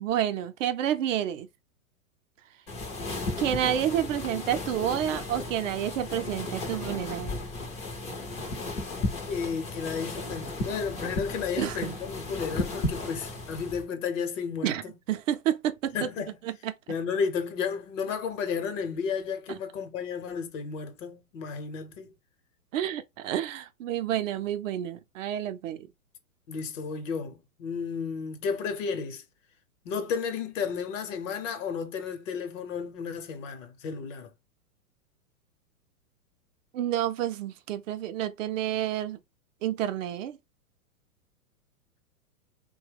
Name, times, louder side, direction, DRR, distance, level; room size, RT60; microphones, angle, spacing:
voice 1, 0.0-1.5 3.4-7.4 11.6-11.9 14.6-14.8 15.1-16.1 16.4-16.7 22.7-25.9 36.7-39.2 39.6-40.4, right 11 dB, 60° right, 0.6 m, -29 dB
sound 1, 2.7-13.8, left 2 dB, 15° left, 0.4 m, -35 dB
voice 2, 9.2-14.9 15.9-16.4 16.9-22.1 26.5-29.2 29.8-34.3, left 6 dB, 55° left, 0.9 m, -33 dB
2.8 x 2.2 x 3.3 m
hypercardioid pair, 125°, 44 cm